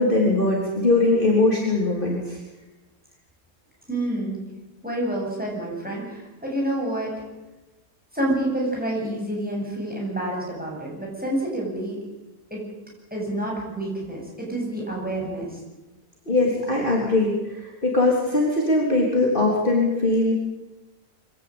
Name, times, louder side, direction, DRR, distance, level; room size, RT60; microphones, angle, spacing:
voice 1, 0.0-2.4 16.3-20.3, left 2 dB, 30° left, -2 dB, 3.8 m, -21 dB
voice 2, 3.9-4.4 4.8-7.1 8.1-12.0 12.5-12.6 13.1-15.6, right 1 dB, 5° right, -2 dB, 8.0 m, -28 dB
24.5 x 16.5 x 8.9 m, 1.1 s
omnidirectional pair, 1.7 m